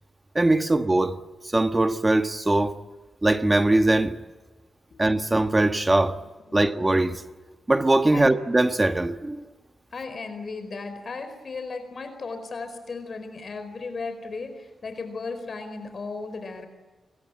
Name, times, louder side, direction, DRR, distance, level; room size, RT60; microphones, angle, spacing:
voice 1, 0.3-1.2 1.4-2.8 3.2-4.2 5.0-6.2 6.5-7.2 7.7-9.4, right 2 dB, 20° right, 1.4 m, -21 dB
voice 2, 9.9-16.7, left 4 dB, 50° left, 4.6 m, -35 dB
29.5 x 23.5 x 8.7 m
cardioid pair, 90°, 0 cm